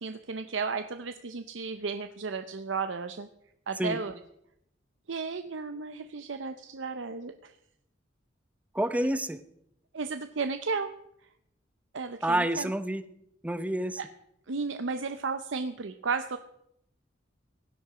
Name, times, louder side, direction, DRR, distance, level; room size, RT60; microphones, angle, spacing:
voice 1, 0.0-3.3 3.7-4.1 5.1-7.5 9.9-10.9 11.9-12.7 14.0-14.1 14.5-16.4, right 4 dB, 85° right, 9 dB, 0.7 m, -34 dB
voice 2, 8.7-9.4 12.2-13.0 13.4-14.0, right 1 dB, 10° right, 11 dB, 0.7 m, -28 dB
17.0 x 11.5 x 5.0 m, 0.77 s
head